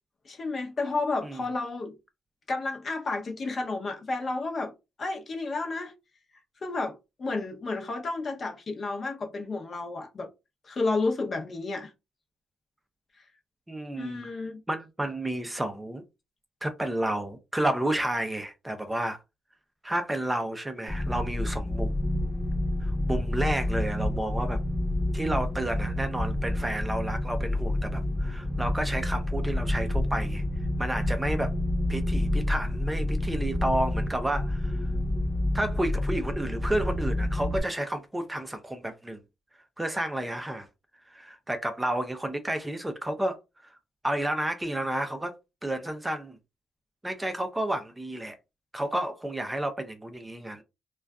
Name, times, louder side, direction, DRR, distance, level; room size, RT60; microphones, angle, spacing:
voice 1, 0.2-2.0 2.5-4.7 5.0-5.9 6.6-10.3 10.6-11.9 14.0-14.6, left 3 dB, 45° left, 0.6 m, -31 dB
voice 2, 13.7-14.3 14.7-16.0 16.6-19.2 19.8-21.9 22.8-24.6 25.1-30.4 30.8-31.5 31.9-34.8 35.5-39.2 39.8-40.7 41.1-43.7 44.0-45.3 45.6-46.4 47.0-48.4 48.7-50.6, right 1 dB, 10° right, 0.4 m, -31 dB
sound 1, 20.9-37.6, left 1 dB, 10° left, 0.8 m, -29 dB
2.5 x 2.2 x 2.2 m
cardioid pair, 90°, 0 cm